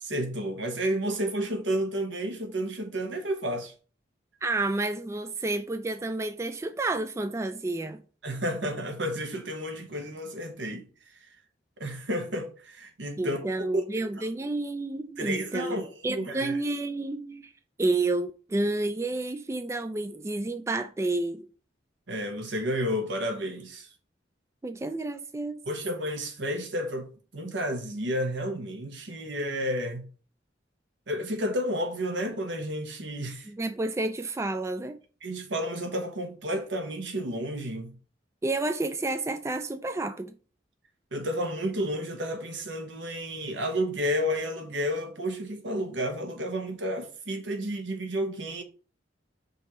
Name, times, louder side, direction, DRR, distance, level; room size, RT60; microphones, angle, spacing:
voice 1, 0.0-3.7 8.2-10.9 11.8-13.4 13.7-13.8 14.2-14.3 15.2-16.6 22.1-23.9 25.7-30.0 31.1-33.5 35.2-37.9 41.1-48.6, equal, 80° right, 1.3 m, -31 dB
voice 2, 4.4-8.0 13.2-15.8 16.0-17.5 17.8-21.5 24.6-25.6 33.5-35.0 38.4-40.3, right 2 dB, 15° right, 0.3 m, -30 dB
5.4 x 3.2 x 5.5 m
head